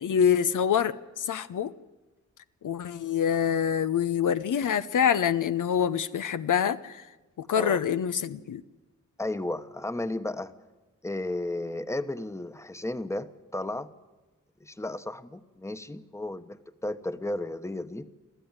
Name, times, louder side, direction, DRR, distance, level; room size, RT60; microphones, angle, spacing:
voice 1, 0.0-1.7 2.6-7.0 7.4-8.6, left 8 dB, 80° left, 12 dB, 0.8 m, -26 dB
voice 2, 9.2-10.5 11.0-13.9 14.6-18.1, left 1 dB, 10° left, 11 dB, 1.1 m, -34 dB
25.5 x 14.5 x 9.6 m, 1.2 s
cardioid pair, 70°, 30 cm